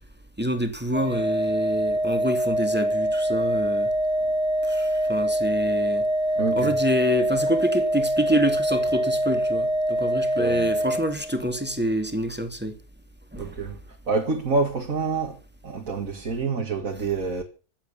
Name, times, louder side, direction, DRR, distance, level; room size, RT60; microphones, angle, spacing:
voice 1, 0.4-3.9 4.6-6.1 6.6-12.8 13.3-13.6, equal, 5° right, 2.5 m, -27 dB
Organ, 0.9-11.6, right 1 dB, 70° left, 3.3 m, -24 dB
voice 2, 6.4-6.7 10.4-10.7 13.4-13.8 14.1-15.4 15.6-17.4, right 4 dB, 55° right, 2.4 m, -27 dB
16.0 x 11.5 x 6.9 m
omnidirectional pair, 1.7 m